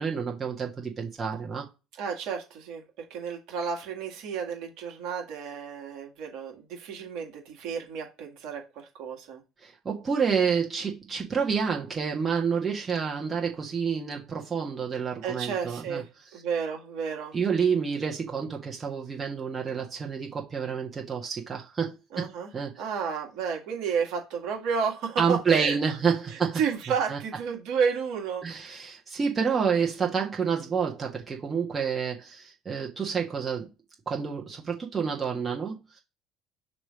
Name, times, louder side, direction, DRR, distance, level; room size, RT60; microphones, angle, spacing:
voice 1, 0.0-1.7 9.6-16.0 17.3-22.8 25.2-26.6 27.1-27.2 28.4-33.7 34.0-36.0, right 6 dB, 30° right, 1.7 m, -29 dB
voice 2, 2.0-9.4 15.2-17.3 22.1-22.5 22.8-25.9 26.6-28.9, right 6 dB, 60° right, 2.1 m, -32 dB
6.0 x 3.3 x 5.0 m
figure-of-eight pair, 60°, 0 cm